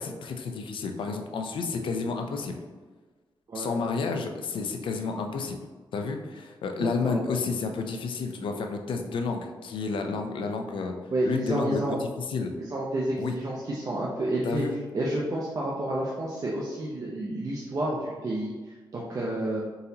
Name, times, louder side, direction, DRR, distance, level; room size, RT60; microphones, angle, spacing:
voice 1, 0.0-2.6 3.5-5.6 5.9-10.9 11.2-12.5 13.2-13.3 14.4-14.8, left 4 dB, 80° left, 4 dB, 0.5 m, -31 dB
voice 2, 6.8-7.2 11.1-12.0 12.7-14.6 14.9-19.6, right 1 dB, 40° right, -5 dB, 0.6 m, -30 dB
4.0 x 3.9 x 2.8 m, 1.4 s
wide cardioid pair, 115°, 8 cm